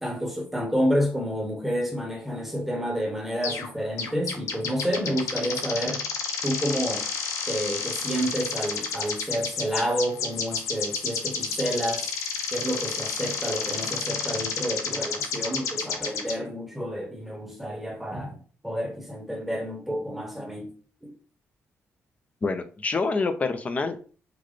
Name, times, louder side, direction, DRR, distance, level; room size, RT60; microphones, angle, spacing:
voice 1, 0.0-6.1 6.4-7.1 7.5-12.1 12.5-20.7 21.0-21.1, equal, 5° right, 0.9 m, -29 dB
sound 1, 3.4-3.7 4.0-16.3, left 5 dB, 85° left, 0.6 m, -31 dB
voice 2, 22.4-24.0, left 4 dB, 30° left, 0.4 m, -26 dB
3.9 x 2.1 x 3.2 m
cardioid pair, 135°, 5 cm